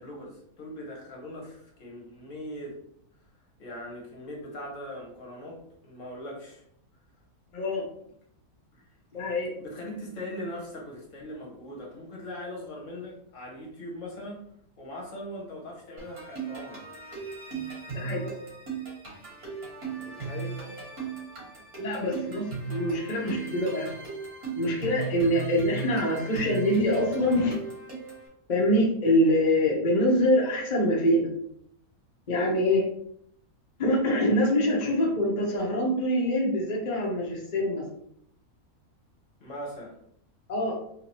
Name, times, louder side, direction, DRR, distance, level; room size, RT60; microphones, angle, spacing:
voice 1, 0.0-2.8 3.6-6.6 8.7-8.8 9.6-14.4 14.8-16.8 17.9-18.1 20.0-20.6 39.4-40.0, left 1 dB, 60° left, -1 dB, 1.3 m, -40 dB
voice 2, 7.5-7.9 9.1-9.5 17.9-18.3 21.8-23.9 24.5-27.6 28.5-31.3 32.3-32.9 33.8-37.9 40.5-40.8, left 1 dB, 35° left, -2 dB, 0.8 m, -25 dB
sound 1, 16.0-28.3, right 5 dB, 80° right, 2.1 m, -37 dB
3.8 x 2.8 x 2.9 m, 0.69 s
omnidirectional pair, 1.5 m